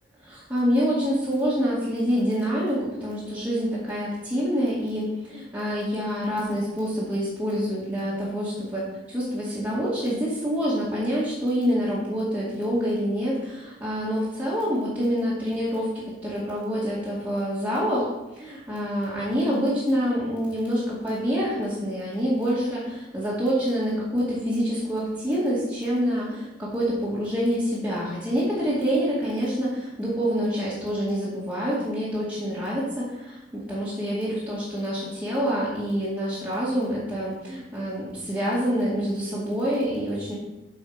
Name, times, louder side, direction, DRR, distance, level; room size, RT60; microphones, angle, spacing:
voice 1, 0.2-15.9 16.2-40.3, equal, 10° right, -8 dB, 2.2 m, -26 dB
7.9 x 5.7 x 5.1 m, 0.97 s
head